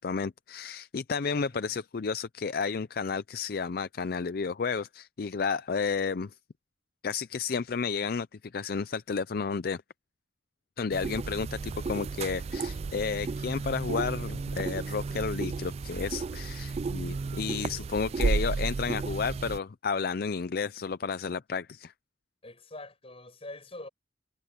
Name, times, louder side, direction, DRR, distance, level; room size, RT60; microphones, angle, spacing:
voice 1, 0.0-6.3 7.0-9.8 10.8-21.9, left 5 dB, 55° left, 0.5 m, -32 dB
voice 2, 1.4-1.8 13.4-13.6 22.4-23.9, left 2 dB, 35° left, 7.6 m, -46 dB
sound 1, 10.9-19.6, right 4 dB, 35° right, 0.3 m, -33 dB
head